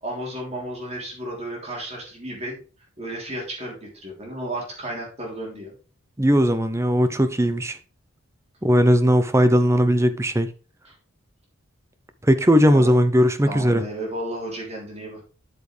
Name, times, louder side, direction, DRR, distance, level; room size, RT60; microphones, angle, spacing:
voice 1, 0.0-2.6 3.0-5.7 7.4-7.5 9.6-9.7 10.9-11.0 12.7-13.0 13.4-15.2, right 1 dB, 30° right, 3.2 m, -33 dB
voice 2, 6.2-7.8 8.6-10.5 12.2-13.8, equal, 15° right, 0.6 m, -18 dB
8.2 x 7.6 x 3.3 m
head